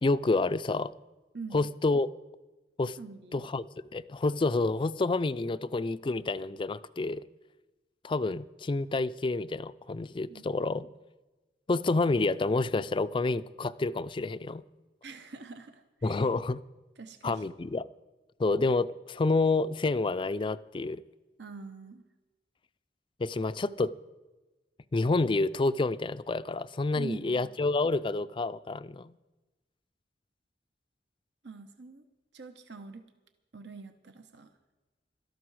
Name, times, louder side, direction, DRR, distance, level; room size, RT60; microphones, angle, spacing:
voice 1, 0.0-0.9 1.5-2.1 2.8-3.0 3.3-3.7 3.9-7.3 8.0-10.9 11.7-14.6 16.0-16.6 17.2-17.9 18.4-21.0 23.2-23.9 24.9-29.1, left 3 dB, 30° left, 14 dB, 0.4 m, -28 dB
voice 2, 3.0-3.4 10.3-10.5 15.0-16.3 17.0-17.5 21.4-22.0 26.9-27.5 31.4-32.0 32.3-33.0 33.5-34.5, right 4 dB, 70° right, 7 dB, 0.9 m, -44 dB
17.5 x 13.0 x 4.8 m, 1.2 s
head